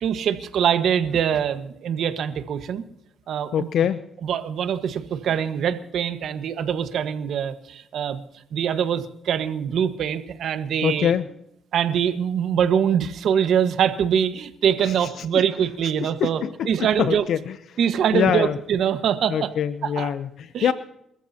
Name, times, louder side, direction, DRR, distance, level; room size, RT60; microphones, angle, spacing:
voice 1, 0.0-2.8 3.3-3.7 4.2-8.2 8.5-11.1 11.7-17.2 17.8-19.5 19.8-20.1 20.5-20.7, right 8 dB, 70° right, 9 dB, 1.4 m, -23 dB
voice 2, 3.5-4.0 10.8-11.2 14.9-15.2 16.0-17.5 18.1-18.6 19.3-20.7, left 9 dB, 70° left, 12 dB, 0.7 m, -24 dB
29.5 x 14.0 x 2.9 m, 0.77 s
cardioid pair, 90°, 0 cm